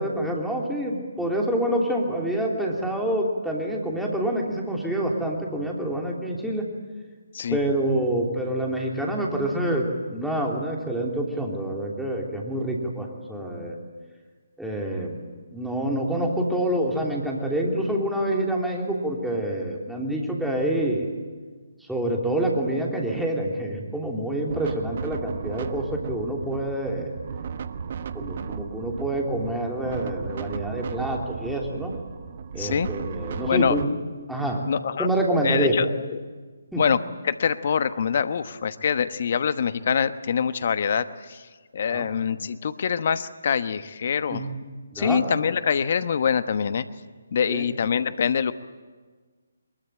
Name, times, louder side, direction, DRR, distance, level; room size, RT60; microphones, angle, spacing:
voice 1, 0.0-6.7 7.5-9.8 10.1-13.8 14.6-15.2 15.5-21.1 21.9-27.1 28.1-31.9 32.5-33.9 34.3-34.6 35.0-35.7 36.7-36.8 41.9-42.1 44.3-44.5 44.9-45.2 47.5-47.7, right 1 dB, ahead, -2 dB, 3.2 m, -27 dB
sound 1, 24.5-33.8, right 6 dB, 45° right, 1.0 m, -35 dB
voice 2, 32.6-32.9 33.5-33.8 34.7-35.1 35.4-36.3 36.8-41.5 41.7-44.4 44.9-46.8 47.3-48.5, left 7 dB, 50° left, 12 dB, 1.1 m, -25 dB
22.5 x 21.5 x 9.0 m, 1.5 s
figure-of-eight pair, 145°, 0 cm